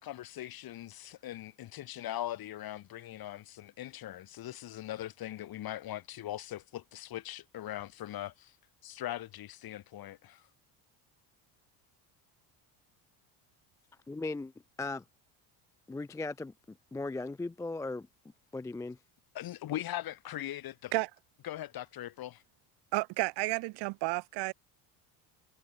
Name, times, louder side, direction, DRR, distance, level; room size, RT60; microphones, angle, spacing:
voice 1, 0.0-8.6 8.8-10.5 19.3-20.9 21.4-22.4, left 13 dB, 50° left, 2.0 m, -40 dB
voice 2, 14.1-14.5 14.8-15.0 15.9-16.5 16.9-18.1 18.5-19.0, left 3 dB, 5° left, 0.4 m, -37 dB
voice 3, 22.9-24.5, right 23 dB, 60° right, 0.5 m, -31 dB
cardioid pair, 110°, 45 cm